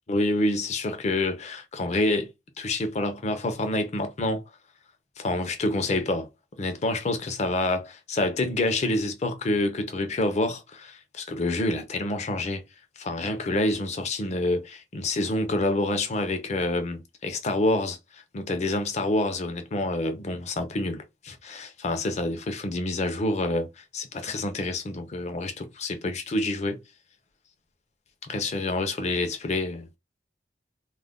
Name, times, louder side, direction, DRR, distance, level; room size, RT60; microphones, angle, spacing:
voice 1, 0.1-2.3 2.6-4.4 5.2-6.3 6.6-12.6 13.0-18.0 18.3-26.8 28.2-29.9, left 2 dB, 40° left, 0.5 m, -27 dB
2.4 x 2.0 x 3.5 m
head